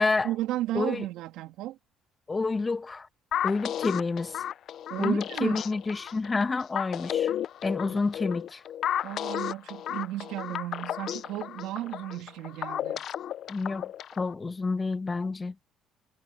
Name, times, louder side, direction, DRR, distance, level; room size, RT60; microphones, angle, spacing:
voice 1, 0.2-1.8 4.9-5.7 7.9-8.0 9.0-13.0, right 15 dB, 80° right, 3.2 m, -34 dB
voice 2, 0.7-1.0 2.3-3.1 3.4-4.4 5.0-7.3 7.6-8.6 13.5-15.5, left 3 dB, 25° left, 1.4 m, -29 dB
sound 1, 3.3-14.3, left 10 dB, 60° left, 0.6 m, -33 dB
cardioid pair, 90°, 0 cm